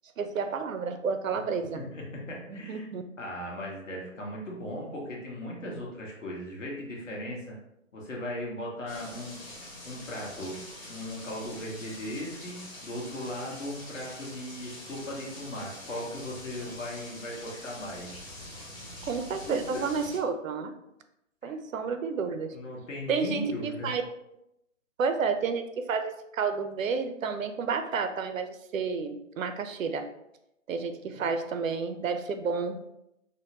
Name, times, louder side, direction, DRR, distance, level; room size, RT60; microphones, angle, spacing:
voice 1, 0.2-1.8 2.5-3.0 19.1-20.7 21.4-22.5 23.1-24.0 25.0-30.1 30.7-32.8, right 5 dB, 80° right, 8 dB, 0.5 m, -30 dB
voice 2, 1.7-2.9 3.2-7.6 7.9-9.4 9.8-10.5 10.9-18.2 19.5-19.6 21.4-21.5 22.5-23.9, left 1 dB, 65° left, -2 dB, 1.2 m, -38 dB
sound 1, 8.9-20.2, left 1 dB, 45° left, 1.4 m, -45 dB
3.5 x 2.1 x 2.9 m, 0.83 s
hypercardioid pair, 165°, 40 cm